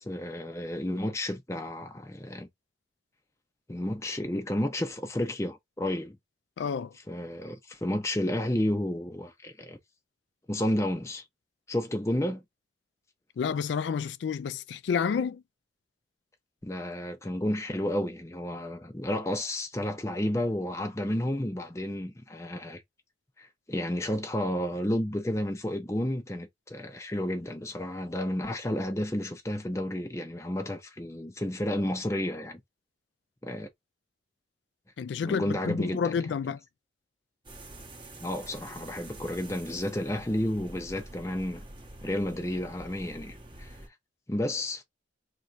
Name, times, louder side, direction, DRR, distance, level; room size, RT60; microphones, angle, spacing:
voice 1, 0.0-2.5 3.7-6.2 7.1-9.8 10.5-11.2 11.7-12.4 16.6-22.8 23.4-32.6 33.4-33.7 35.2-36.1 38.2-41.6 42.0-43.8 44.3-44.8, left 1 dB, 15° left, 0.6 m, -31 dB
voice 2, 6.6-6.9 13.4-15.4 35.0-36.6, left 6 dB, 75° left, 0.3 m, -30 dB
sound 1, 37.4-43.9, right 1 dB, 25° right, 0.9 m, -47 dB
3.0 x 2.6 x 4.4 m
head